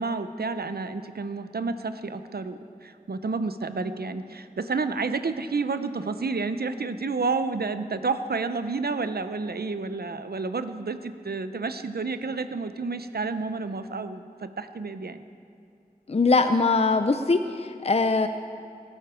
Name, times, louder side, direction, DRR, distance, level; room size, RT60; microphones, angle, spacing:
voice 1, 0.0-15.2, right 4 dB, 85° right, 10 dB, 0.7 m, -30 dB
voice 2, 16.1-18.3, left 3 dB, 40° left, 8 dB, 0.5 m, -22 dB
18.0 x 11.5 x 5.0 m, 2.5 s
wide cardioid pair, 55°, 16 cm